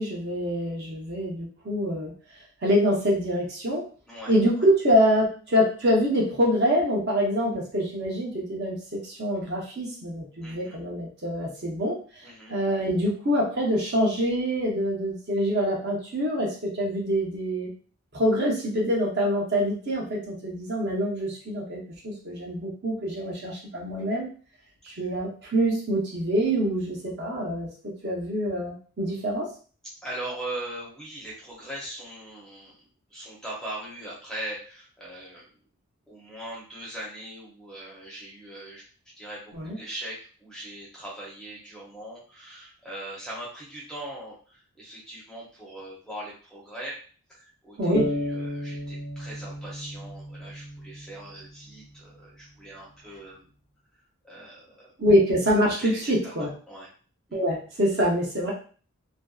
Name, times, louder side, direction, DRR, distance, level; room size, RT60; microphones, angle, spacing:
voice 1, 0.0-2.1 2.6-3.8 4.3-17.7 18.1-24.3 24.8-27.7 28.0-29.5 39.5-39.8 47.8-48.1 55.0-56.5 57.3-58.5, equal, 50° right, -3 dB, 0.7 m, -25 dB
voice 2, 10.4-10.8 12.2-12.5 24.9-25.1 30.0-32.8 33.1-35.6 36.1-38.8 39.2-47.0 47.3-53.5 54.2-54.8 55.8-56.3 56.7-56.9 57.3-57.4, right 1 dB, 5° left, -5 dB, 0.6 m, -40 dB
sound 1, 47.9-51.7, equal, 45° left, 0.5 m, -34 dB
2.5 x 2.2 x 2.3 m, 0.40 s
head